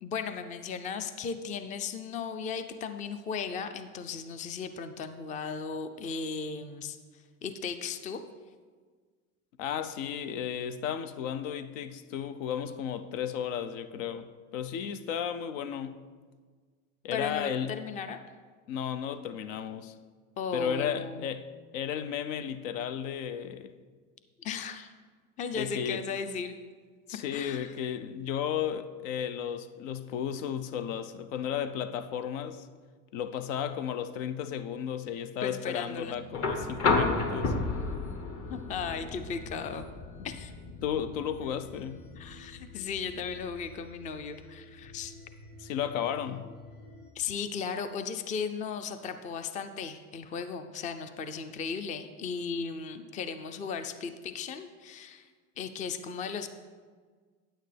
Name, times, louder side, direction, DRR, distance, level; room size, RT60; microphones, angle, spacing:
voice 1, 0.0-7.0 7.4-8.2 17.1-18.2 20.4-21.3 24.4-24.9 25.4-26.6 27.3-27.7 35.4-36.1 38.5-39.9 40.2-40.5 42.2-45.1 47.1-55.3 55.6-56.5, left 6 dB, 20° left, 0.4 m, -36 dB
voice 2, 9.6-15.9 17.0-17.7 18.7-19.9 20.5-21.5 21.7-23.7 25.6-26.0 27.1-32.7 33.1-37.6 40.8-42.0 45.6-46.5, left 8 dB, 80° left, 0.6 m, -34 dB
sound 1, 36.0-47.1, left 2 dB, 55° left, 1.2 m, -51 dB
sound 2, 36.3-44.4 45.8-45.9, left 3 dB, 40° left, 1.2 m, -33 dB
9.0 x 8.9 x 3.3 m
supercardioid pair, 120°, 38 cm